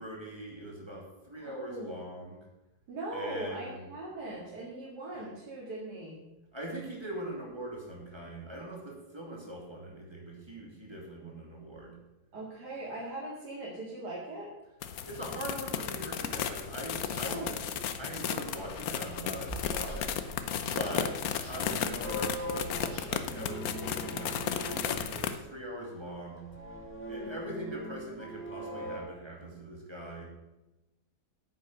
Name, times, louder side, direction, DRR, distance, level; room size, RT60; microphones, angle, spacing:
voice 1, 0.0-2.4 3.1-3.9 4.3-4.5 6.5-12.0 15.0-17.5 18.0-20.1 20.6-21.1 21.5-26.5 27.1-30.3, right 1 dB, 15° right, -2 dB, 2.7 m, -42 dB
voice 2, 1.4-1.9 2.9-6.2 12.3-14.5 17.2-17.6 20.7-21.2, right 2 dB, 70° right, -4 dB, 2.7 m, -40 dB
sound 1, 14.8-25.4, left 8 dB, 65° left, 1.1 m, -34 dB
Chewing mastication, 16.3-23.3, equal, 40° right, 3.0 m, -48 dB
sound 2, 19.9-29.0, right 1 dB, 5° left, 1.5 m, -42 dB
9.5 x 8.5 x 6.3 m, 1.0 s
omnidirectional pair, 1.9 m